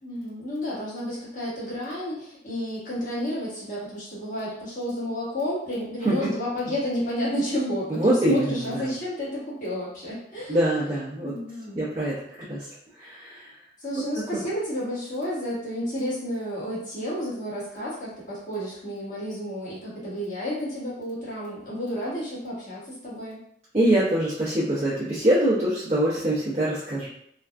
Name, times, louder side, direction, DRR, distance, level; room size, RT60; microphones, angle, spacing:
voice 1, 0.0-10.6 11.2-11.9 13.8-23.4, equal, 45° left, -8 dB, 1.3 m, -31 dB
voice 2, 7.9-8.9 10.5-11.3 11.7-12.7 13.0-13.5 23.7-27.1, right 1 dB, 35° right, -10 dB, 0.8 m, -24 dB
3.4 x 2.2 x 2.5 m, 0.72 s
head